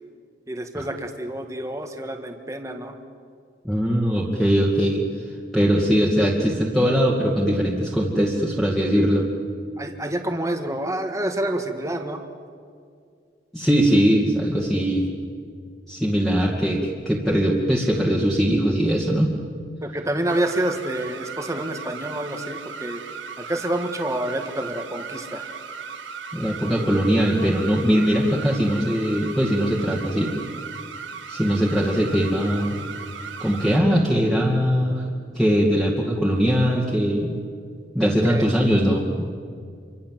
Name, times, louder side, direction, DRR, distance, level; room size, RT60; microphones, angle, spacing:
voice 1, 0.5-3.0 9.8-12.2 19.8-23.0 23.4-25.5 38.0-38.5, right 1 dB, 15° right, 4 dB, 1.7 m, -28 dB
voice 2, 3.6-5.2 5.5-9.3 13.5-15.1 15.9-19.3 26.3-30.3 31.3-32.8 33.4-35.0 35.3-37.4 37.9-39.2, equal, ahead, -3 dB, 2.4 m, -21 dB
sound 1, 20.3-33.8, right 5 dB, 90° right, 1.8 m, -37 dB
28.0 x 24.5 x 7.7 m, 2.3 s
head